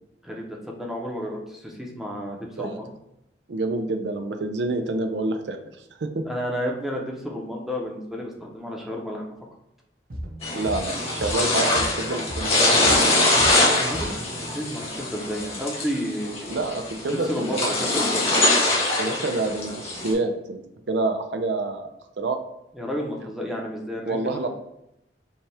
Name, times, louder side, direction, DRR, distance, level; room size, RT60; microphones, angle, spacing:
voice 1, 0.2-2.9 6.3-9.2 13.8-16.6 17.1-18.3 22.7-24.5, equal, ahead, -1 dB, 0.7 m, -31 dB
voice 2, 3.5-5.6 6.0-6.2 10.5-13.1 16.5-17.8 19.0-20.6 20.9-21.9 22.2-22.4 24.1-24.5, right 2 dB, 75° right, 6 dB, 0.5 m, -27 dB
sound 1, 10.1-14.6, equal, 55° right, 0.9 m, -36 dB
sound 2, 10.4-20.1, left 2 dB, 35° left, 1.3 m, -23 dB
5.3 x 2.4 x 3.3 m, 0.84 s
head